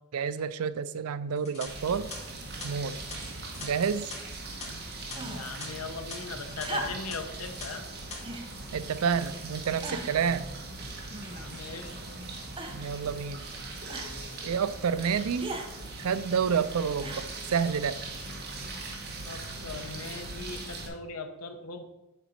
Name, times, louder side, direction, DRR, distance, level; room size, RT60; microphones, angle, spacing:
voice 1, 0.1-2.1 2.6-3.0 3.6-4.1 8.7-10.5 12.7-13.4 14.4-15.5 16.0-18.0, right 6 dB, 80° right, 14 dB, 0.4 m, -29 dB
sound 1, 1.4-5.7 5.9-6.1 6.6-6.7 7.1-7.7 7.9-8.2, left 3 dB, 30° left, 2.3 m, -43 dB
sound 2, 1.7-20.9, right 2 dB, 50° right, 1.3 m, -40 dB
sound 3, 5.1-5.6 6.6-7.2 8.2-8.5 9.2-9.3 9.8-10.3 11.1-11.6 12.6-13.0 13.9-14.2 15.4-15.7 17.0-17.5 18.5-18.6, right 2 dB, 25° right, 0.8 m, -38 dB
voice 2, 5.3-7.8 11.3-12.1 19.3-21.8, left 4 dB, 85° left, 6 dB, 1.0 m, -40 dB
7.4 x 4.1 x 5.7 m, 0.95 s
head